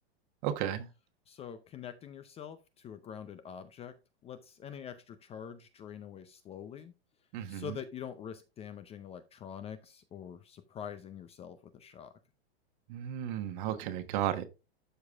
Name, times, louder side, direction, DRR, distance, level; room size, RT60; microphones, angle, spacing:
voice 1, 0.4-0.9 7.3-7.8 12.9-14.5, right 11 dB, 50° right, 1.3 m, -34 dB
voice 2, 1.3-4.0 4.2-6.9 7.5-12.1, left 8 dB, 20° left, 0.5 m, -45 dB
12.5 x 4.7 x 2.4 m
hypercardioid pair, 120°, 32 cm